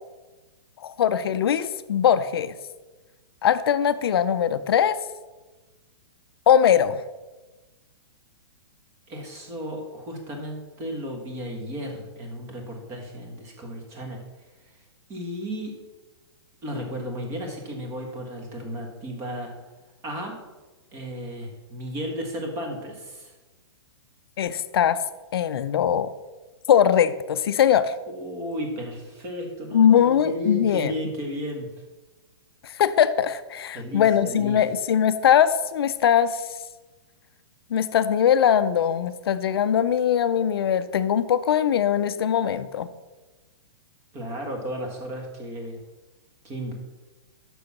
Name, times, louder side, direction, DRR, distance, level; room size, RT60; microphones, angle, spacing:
voice 1, 0.8-2.5 3.4-5.0 6.5-7.0 24.4-25.0 25.3-26.1 26.7-27.9 29.7-30.9 32.8-36.4 37.7-42.9, left 9 dB, 60° left, 12 dB, 0.6 m, -21 dB
voice 2, 9.1-14.2 15.1-15.7 16.6-19.5 20.0-20.4 20.9-23.3 28.1-31.7 33.7-34.6 44.1-45.8 46.4-46.7, equal, 20° right, 2 dB, 1.6 m, -34 dB
6.6 x 6.3 x 7.1 m, 1.2 s
hypercardioid pair, 165°, 14 cm